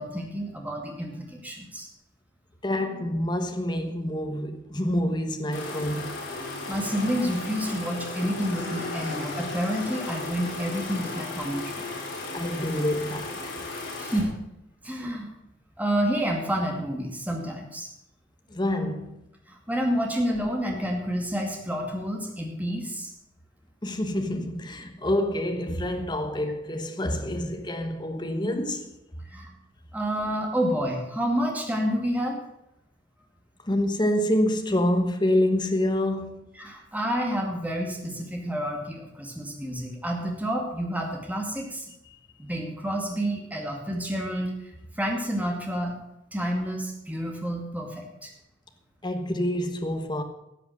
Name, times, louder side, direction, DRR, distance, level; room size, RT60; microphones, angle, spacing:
voice 1, 0.0-1.9 6.7-11.8 14.0-14.3 14.8-15.3 15.8-17.9 19.5-23.1 29.3-29.5 29.9-32.4 36.6-41.9 42.4-44.5 45.0-45.9 46.3-48.3, equal, 10° right, 2.3 m, -29 dB
voice 2, 2.6-6.2 12.3-13.6 15.0-15.1 18.5-19.2 23.8-28.9 33.6-36.5 49.0-50.2, left 1 dB, 25° left, 1.1 m, -27 dB
sound 1, 5.5-14.2, left 2 dB, 75° left, 4.0 m, -35 dB
13.5 x 7.8 x 6.5 m
head